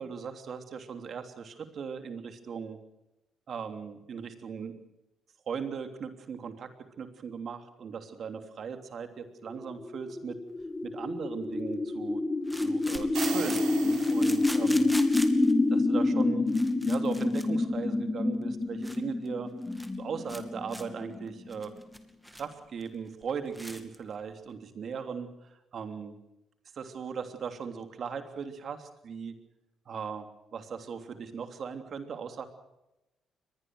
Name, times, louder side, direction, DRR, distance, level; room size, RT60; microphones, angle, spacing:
voice 1, 0.0-2.8 3.5-4.7 5.5-6.7 7.0-10.4 10.8-12.2 12.6-14.9 15.7-16.5 16.8-19.5 20.0-21.7 22.3-26.2 26.7-29.3 29.9-30.2 30.5-32.5, right 6 dB, 55° right, 7 dB, 3.2 m, -38 dB
sound 1, 9.7-21.8, left 2 dB, 20° left, 2.0 m, -28 dB
sound 2, 10.6-10.7 12.5-15.5 16.2-16.3 16.5-17.5 17.7-17.9 18.4-18.5 18.8-19.0 19.3-19.4 19.6-20.0 20.3-20.4 20.7-20.8 21.3-22.5 22.8-22.9 23.2-23.3 23.5-24.0, equal, ahead, 2.6 m, -41 dB
sound 3, 13.0-15.0, right 8 dB, 80° right, 3.7 m, -39 dB
23.5 x 20.0 x 6.5 m, 0.92 s
cardioid pair, 90°, 0 cm